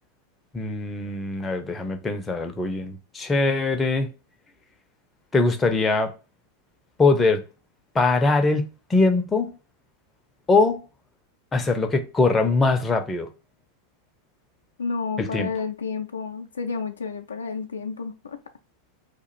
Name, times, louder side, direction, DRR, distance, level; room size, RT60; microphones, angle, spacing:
voice 1, 0.5-4.1 5.3-6.1 7.0-7.4 7.9-9.5 10.5-10.8 11.5-13.3 15.2-15.5, left 3 dB, 15° left, 0.5 m, -22 dB
voice 2, 14.8-18.4, left 5 dB, 70° left, 0.4 m, -30 dB
2.9 x 2.4 x 4.3 m
figure-of-eight pair, 90°, 0 cm